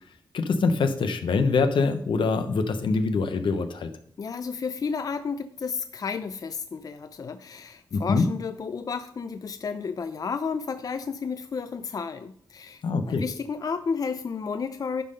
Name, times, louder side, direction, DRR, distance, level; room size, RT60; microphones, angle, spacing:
voice 1, 0.3-3.9 7.9-8.2 12.8-13.2, left 4 dB, 80° left, 8 dB, 0.8 m, -24 dB
voice 2, 4.2-15.0, left 5 dB, 45° left, 10 dB, 0.4 m, -32 dB
10.5 x 3.7 x 5.1 m, 0.64 s
wide cardioid pair, 90°, 8 cm